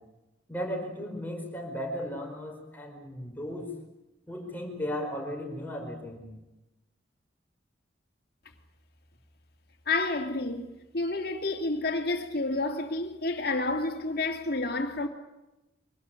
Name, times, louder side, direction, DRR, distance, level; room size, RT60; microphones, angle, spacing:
voice 1, 0.5-3.7 4.3-6.3, equal, 10° left, 4.7 m, -35 dB
voice 2, 9.9-10.7 10.9-15.1, left 2 dB, 55° left, 2.7 m, -29 dB
24.5 x 19.0 x 9.0 m
head